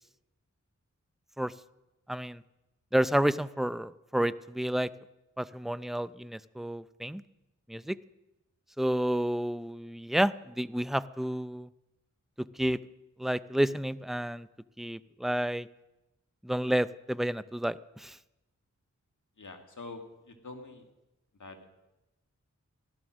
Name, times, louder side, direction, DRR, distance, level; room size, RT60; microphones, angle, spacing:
voice 1, 2.1-2.4 2.9-4.9 5.4-7.2 7.7-8.0 8.8-11.7 12.5-12.8 13.2-14.5 14.8-15.7 16.4-18.2, right 1 dB, ahead, 15 dB, 0.5 m, -30 dB
voice 2, 19.4-20.9 21.4-21.7, left 3 dB, 80° left, 4 dB, 2.1 m, -45 dB
16.0 x 12.5 x 6.3 m, 0.98 s
wide cardioid pair, 55°, 30 cm